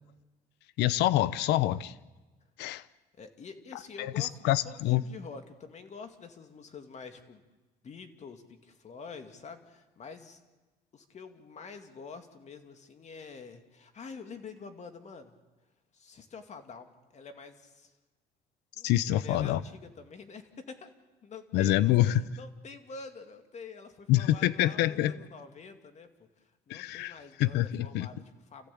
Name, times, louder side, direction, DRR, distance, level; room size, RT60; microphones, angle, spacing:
voice 1, 0.8-1.9 2.6-2.8 4.0-5.0 18.8-19.6 21.5-22.2 24.1-25.1 26.7-28.1, left 14 dB, 85° left, 0.8 m, -26 dB
voice 2, 3.2-7.4 7.8-10.4 10.9-15.4 15.9-18.0 18.8-20.9 21.2-28.7, left 5 dB, 40° left, 2.4 m, -47 dB
29.5 x 15.0 x 8.6 m
cardioid pair, 110°, 17 cm